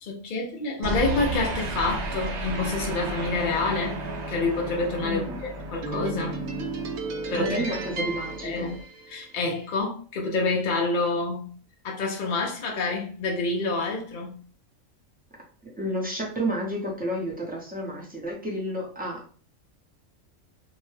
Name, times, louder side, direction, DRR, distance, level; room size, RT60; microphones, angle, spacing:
voice 1, 0.0-4.0 4.3-6.4 7.3-8.1 8.4-8.7 9.1-11.5 11.8-14.4, left 3 dB, 55° left, 0 dB, 0.6 m, -28 dB
sound 1, 0.8-9.4, right 3 dB, 65° right, 0.8 m, -32 dB
voice 2, 5.0-5.4 7.3-8.8 15.8-19.2, equal, 10° right, -3 dB, 0.5 m, -31 dB
2.7 x 2.1 x 3.2 m, 0.41 s
omnidirectional pair, 1.4 m